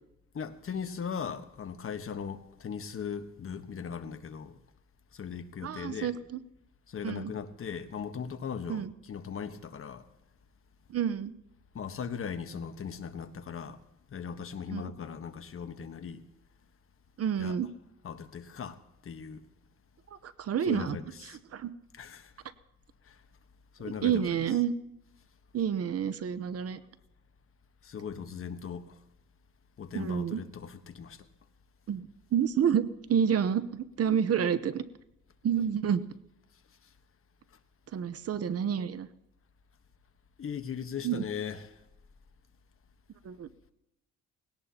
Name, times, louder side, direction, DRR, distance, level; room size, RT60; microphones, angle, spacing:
voice 1, 0.3-4.6 5.1-6.1 6.9-10.0 11.7-13.8 14.1-16.2 17.4-17.6 18.0-18.8 19.0-19.4 20.6-21.4 22.0-22.3 23.1-23.2 23.8-24.3 27.8-29.0 29.8-31.2 40.4-41.8, left 7 dB, 45° left, 1.2 m, -38 dB
voice 2, 5.6-6.4 7.0-7.3 8.7-8.9 10.9-11.3 14.7-14.9 17.2-17.7 20.2-21.0 21.2-21.7 23.8-24.7 25.5-26.8 29.9-30.4 31.9-32.0 32.3-34.8 35.4-36.0 37.9-39.1 41.0-41.2 43.2-43.5, right 8 dB, 55° right, 0.9 m, -29 dB
20.0 x 17.5 x 2.9 m
cardioid pair, 90°, 30 cm